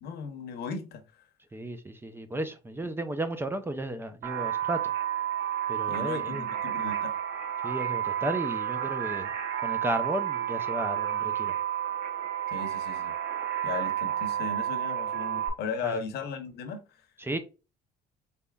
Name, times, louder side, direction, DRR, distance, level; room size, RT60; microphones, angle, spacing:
voice 1, 0.0-1.0 5.9-7.2 12.5-13.2 13.6-17.0, left 5 dB, 70° left, 0.9 m, -37 dB
voice 2, 1.5-4.9 5.7-6.5 7.6-9.3 9.6-11.6 15.8-16.0 17.2-17.4, right 1 dB, 15° right, 0.5 m, -34 dB
sound 1, 4.2-15.5, right 10 dB, 70° right, 0.9 m, -31 dB
4.0 x 3.5 x 2.3 m
cardioid pair, 110°, 17 cm